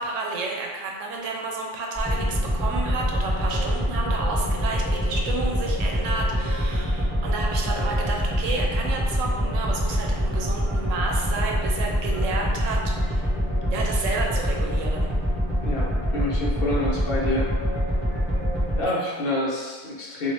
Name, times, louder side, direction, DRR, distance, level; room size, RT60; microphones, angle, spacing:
voice 1, 0.0-13.3 13.7-15.1 18.9-19.2, right 3 dB, 85° right, 0 dB, 0.9 m, -31 dB
sound 1, 2.0-18.8, equal, ahead, 1.4 m, -25 dB
voice 2, 15.6-17.5 18.7-20.3, left 1 dB, 60° left, -5 dB, 0.7 m, -27 dB
3.1 x 2.5 x 2.8 m, 1.4 s
omnidirectional pair, 1.3 m